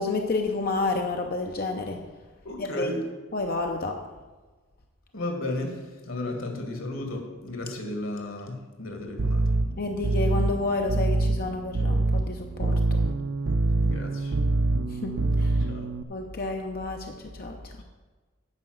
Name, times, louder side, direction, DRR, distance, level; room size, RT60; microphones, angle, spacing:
voice 1, 0.0-2.0 2.6-2.9 3.3-4.0 9.8-12.8 15.0-15.6 16.1-17.6, left 3 dB, 50° left, 3 dB, 0.7 m, -30 dB
voice 2, 2.4-3.1 5.1-9.5 13.6-14.4 15.7-15.9, left 1 dB, 90° left, 3 dB, 2.0 m, -34 dB
sound 1, 9.2-16.0, right 2 dB, 80° right, 0.5 m, -25 dB
9.8 x 5.0 x 7.8 m, 1.3 s
head